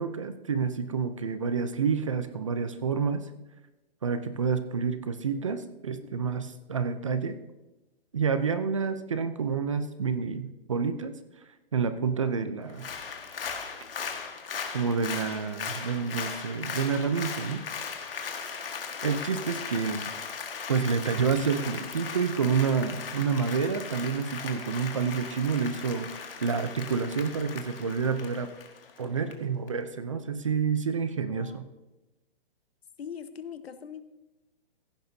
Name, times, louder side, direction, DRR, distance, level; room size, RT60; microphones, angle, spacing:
voice 1, 0.0-3.3 4.0-7.4 8.1-11.1 11.7-12.9 14.7-17.6 18.2-18.3 19.0-20.1 20.7-28.5 29.0-31.7, right 6 dB, 30° right, 11 dB, 0.5 m, -29 dB
voice 2, 6.0-6.4 31.3-31.6 33.0-34.0, left 7 dB, 85° left, 11 dB, 1.1 m, -42 dB
Applause, 12.7-29.3 29.7-29.8, left 6 dB, 65° left, 1.7 m, -38 dB
16.0 x 10.5 x 2.7 m, 1.0 s
hypercardioid pair, 175°, 30 cm